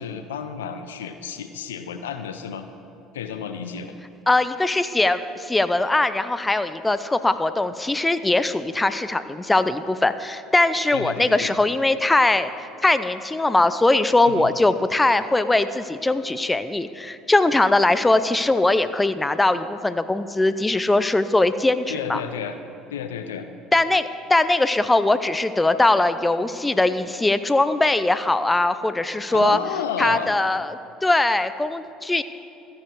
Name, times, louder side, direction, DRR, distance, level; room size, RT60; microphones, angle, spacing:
voice 1, 0.0-2.6 3.1-3.9 10.9-11.5 14.3-14.5 21.9-22.6 22.9-23.5 29.3-30.3, left 7 dB, 85° left, 9 dB, 0.6 m, -31 dB
voice 2, 4.3-12.5 12.8-22.2 23.7-29.6 30.0-32.2, left 2 dB, 15° left, 12 dB, 0.6 m, -21 dB
14.0 x 9.7 x 4.6 m, 3.0 s
hypercardioid pair, 65°, 0 cm